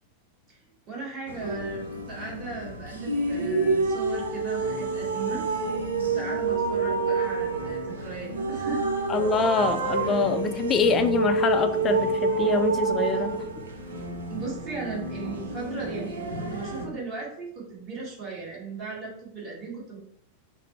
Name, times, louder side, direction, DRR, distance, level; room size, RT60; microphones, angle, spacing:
voice 1, 0.9-5.4 6.0-8.9 14.3-20.0, right 4 dB, 30° right, -3 dB, 1.6 m, -37 dB
sound 1, 1.3-16.8, right 3 dB, 70° right, 0.7 m, -28 dB
voice 2, 9.1-13.3, left 4 dB, 25° left, 8 dB, 0.4 m, -25 dB
4.9 x 2.0 x 4.3 m, 0.70 s
figure-of-eight pair, 90°, 0 cm